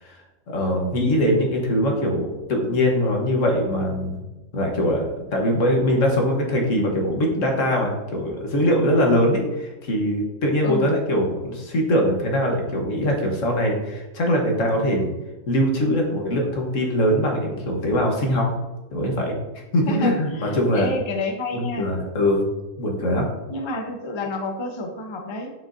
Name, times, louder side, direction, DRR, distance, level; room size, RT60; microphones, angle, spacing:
voice 1, 0.5-4.2 4.5-15.1 15.5-18.5 18.9-19.3 19.7-20.9 21.5-22.4 22.8-23.3, equal, 70° left, 1 dB, 1.6 m, -22 dB
voice 2, 19.9-21.9 23.5-25.5, left 2 dB, 25° left, 2 dB, 0.7 m, -29 dB
7.1 x 6.3 x 2.7 m, 1.1 s
omnidirectional pair, 1.4 m